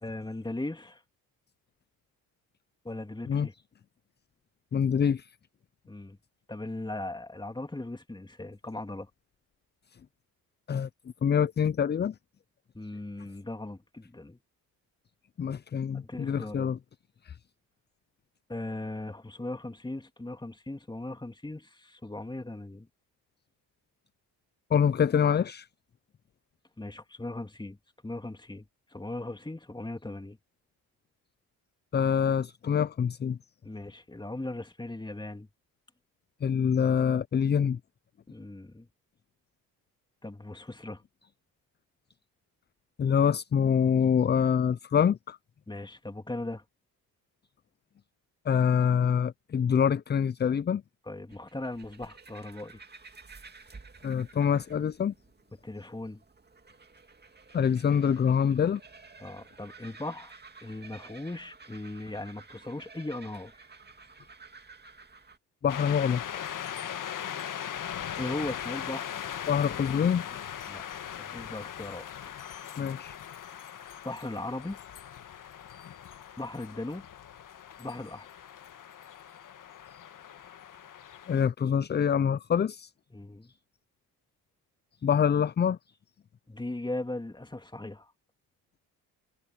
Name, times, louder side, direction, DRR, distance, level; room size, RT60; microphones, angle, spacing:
voice 1, 0.0-1.0 2.8-3.5 5.9-6.2 6.5-9.1 12.7-14.4 16.0-16.7 18.5-22.9 26.8-27.8 28.0-30.4 33.6-35.5 38.3-38.9 40.2-41.0 45.7-46.6 51.1-52.8 55.6-56.2 59.2-63.6 68.2-69.1 70.7-70.8 71.2-72.1 74.0-74.8 76.4-77.1 77.8-78.3 83.1-83.5 86.5-88.1, left 2 dB, 10° left, 2.5 m, -38 dB
voice 2, 4.7-5.3 10.7-10.9 11.2-12.1 15.4-16.8 17.3-17.4 24.7-25.7 31.9-33.4 36.4-37.8 43.0-45.4 48.5-50.8 54.0-55.1 57.5-58.8 65.6-66.2 69.5-70.4 72.8-73.2 81.3-82.9 85.0-85.8, left 7 dB, 25° left, 0.5 m, -25 dB
sound 1, 51.3-65.4, right 4 dB, 25° right, 2.4 m, -52 dB
sound 2, 65.7-81.4, left 9 dB, 55° left, 1.8 m, -40 dB
supercardioid pair, 65°, 38 cm